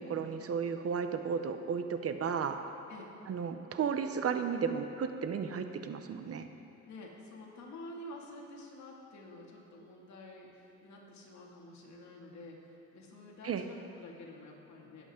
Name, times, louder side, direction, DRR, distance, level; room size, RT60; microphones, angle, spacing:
voice 1, 0.0-2.6 3.3-6.5 13.4-13.7, right 6 dB, 50° right, 8 dB, 0.8 m, -34 dB
voice 2, 6.8-15.1, left 1 dB, 65° left, -2 dB, 2.3 m, -49 dB
20.0 x 8.2 x 3.8 m, 2.9 s
cardioid pair, 90°, 30 cm